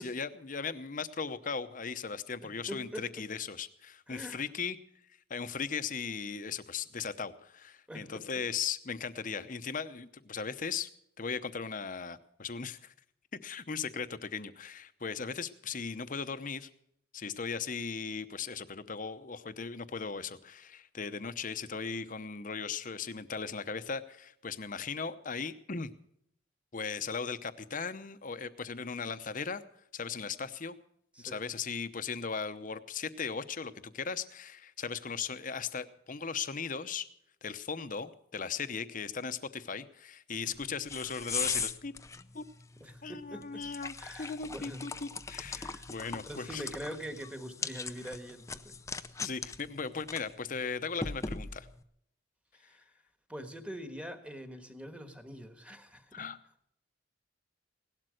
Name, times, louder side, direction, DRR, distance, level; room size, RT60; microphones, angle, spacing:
voice 1, 0.0-4.8 5.3-10.9 11.2-12.9 13.4-16.7 17.1-25.9 26.7-29.6 29.9-30.8 31.2-37.0 37.4-41.9 42.3-42.4 43.0-46.7 49.2-51.7 56.1-56.4, left 5 dB, 45° left, 12 dB, 0.8 m, -38 dB
voice 2, 2.4-3.1 4.1-4.5 7.9-8.2 31.1-31.5 42.8-43.7 44.0-44.9 45.6-45.9 46.2-48.8 52.5-52.8 53.3-56.2, equal, 5° right, 7 dB, 1.4 m, -44 dB
sound 1, 40.4-51.8, left 4 dB, 15° left, 0.5 m, -40 dB
17.5 x 12.0 x 6.4 m, 0.74 s
head